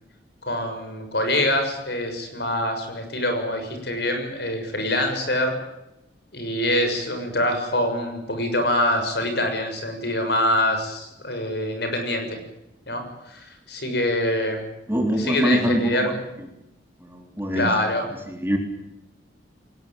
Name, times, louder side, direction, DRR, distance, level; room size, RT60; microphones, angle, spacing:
voice 1, 0.4-5.5 6.3-12.4 12.9-14.6 15.2-16.2 17.5-18.0, left 1 dB, 60° left, 6 dB, 6.7 m, -25 dB
voice 2, 14.9-16.1 17.0-17.7 18.3-18.6, equal, 10° right, 3 dB, 3.9 m, -24 dB
22.5 x 19.5 x 9.1 m, 0.87 s
head